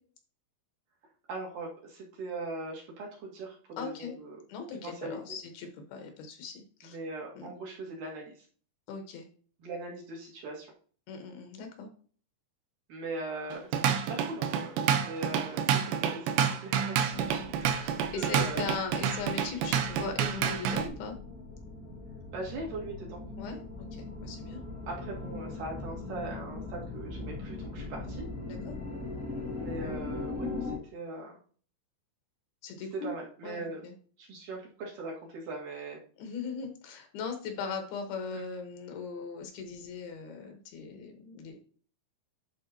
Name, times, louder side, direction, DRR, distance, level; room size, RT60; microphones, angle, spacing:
voice 1, 1.3-4.4 4.8-5.2 6.8-8.5 9.6-10.7 12.9-17.9 18.1-18.6 22.3-23.2 24.9-28.2 29.6-31.4 32.9-33.8 34.2-36.0 38.3-38.4, right 2 dB, 60° right, -3 dB, 3.2 m, -40 dB
voice 2, 3.8-4.1 4.5-7.0 7.3-7.5 8.9-9.3 11.1-11.9 17.1-21.2 23.4-24.6 28.5-28.8 32.6-33.1 33.4-33.9 36.2-41.6, left 5 dB, 80° left, 4 dB, 3.2 m, -39 dB
Drum kit / Drum, 13.5-20.9, right 8 dB, 80° right, 2.4 m, -29 dB
sound 1, 17.1-30.8, left 3 dB, 25° right, 0.3 m, -40 dB
11.5 x 4.7 x 2.8 m, 0.44 s
omnidirectional pair, 4.4 m